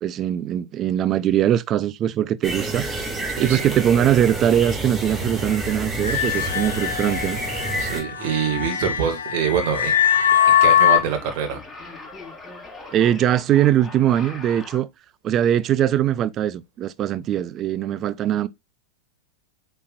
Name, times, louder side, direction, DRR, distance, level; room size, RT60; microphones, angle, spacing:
voice 1, 0.0-2.8 3.4-7.4 12.9-14.9 15.2-18.5, right 11 dB, 30° right, 0.5 m, -21 dB
sound 1, 2.4-8.0, right 2 dB, 15° right, 2.3 m, -29 dB
sound 2, 6.0-11.0, left 9 dB, 70° left, 1.1 m, -21 dB
voice 2, 7.7-9.9 10.5-11.6, right 8 dB, 45° right, 2.1 m, -25 dB
sound 3, 9.6-14.8, left 2 dB, 10° left, 3.7 m, -41 dB
8.4 x 4.4 x 2.5 m
figure-of-eight pair, 90°, 0 cm